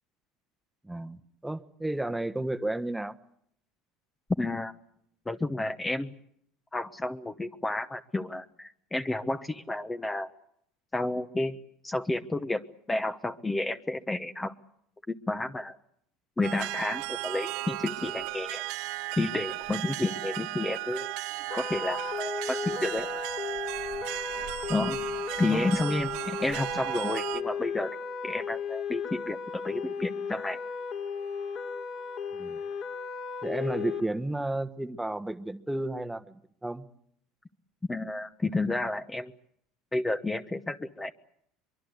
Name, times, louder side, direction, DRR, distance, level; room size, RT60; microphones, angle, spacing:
voice 1, 0.8-3.2 25.5-25.7 32.3-32.6 33.4-36.3 36.6-36.9, right 1 dB, 5° right, 10 dB, 1.3 m, -32 dB
voice 2, 4.4-4.7 5.3-6.2 6.7-10.3 10.9-11.6 11.8-14.5 15.1-15.8 16.4-18.6 19.2-21.2 21.5-23.1 24.7-25.0 25.4-28.0 28.2-30.6 37.9-39.3 39.9-41.1, left 2 dB, 15° left, 9 dB, 1.0 m, -31 dB
sound 1, 16.4-27.4, right 18 dB, 70° right, 1.0 m, -35 dB
sound 2, 21.5-34.0, left 6 dB, 50° left, 4.2 m, -35 dB
23.5 x 23.0 x 8.0 m, 0.71 s
supercardioid pair, 105°, 0 cm